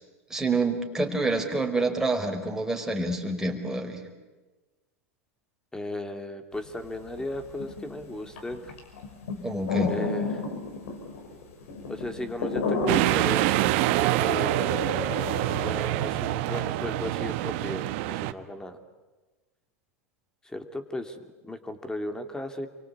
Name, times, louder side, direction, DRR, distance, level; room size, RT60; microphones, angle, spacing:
voice 1, 0.3-4.0 9.4-9.9, right 2 dB, 5° right, 2 dB, 4.8 m, -27 dB
voice 2, 5.7-8.7 9.9-10.4 11.9-13.5 13.8-14.9 15.5-18.8 20.4-22.7, left 1 dB, 10° left, 7 dB, 2.8 m, -36 dB
sound 1, 6.6-6.7 6.9-15.7, left 4 dB, 70° left, 5.9 m, -32 dB
sound 2, 12.9-18.3, right 15 dB, 55° right, 1.3 m, -26 dB
28.5 x 24.0 x 8.7 m, 1.2 s
hypercardioid pair, 95°, 8 cm